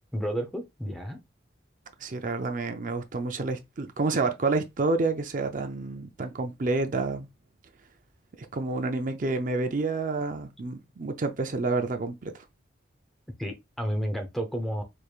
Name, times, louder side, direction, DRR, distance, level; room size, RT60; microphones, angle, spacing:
voice 1, 0.1-1.2 13.4-14.8, equal, ahead, 0.7 m, -31 dB
voice 2, 2.0-7.3 8.4-12.4, right 3 dB, 45° right, 0.5 m, -29 dB
4.5 x 3.3 x 2.4 m
head